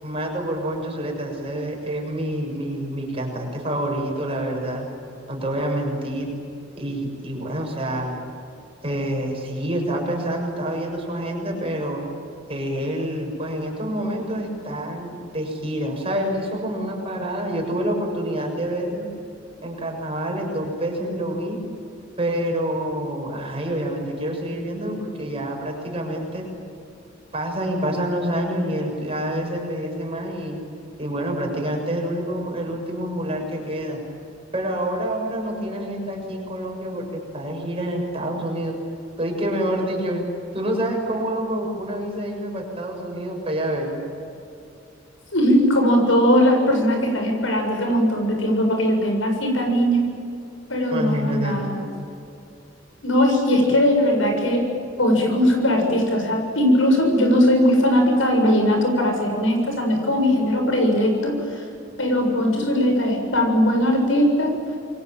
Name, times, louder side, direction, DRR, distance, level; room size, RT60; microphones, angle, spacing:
voice 1, 0.0-4.9 5.3-6.3 6.7-8.2 8.8-12.0 12.5-19.1 19.6-21.6 22.2-26.5 27.3-30.6 31.0-34.0 34.5-38.8 39.2-40.2 40.5-44.0 50.9-51.9, right 1 dB, 30° right, 1 dB, 6.8 m, -27 dB
voice 2, 45.3-50.1 50.7-51.9 53.0-54.6 55.0-61.6 62.0-64.5, equal, 85° left, 3 dB, 7.5 m, -19 dB
28.0 x 23.0 x 9.1 m, 2.6 s
head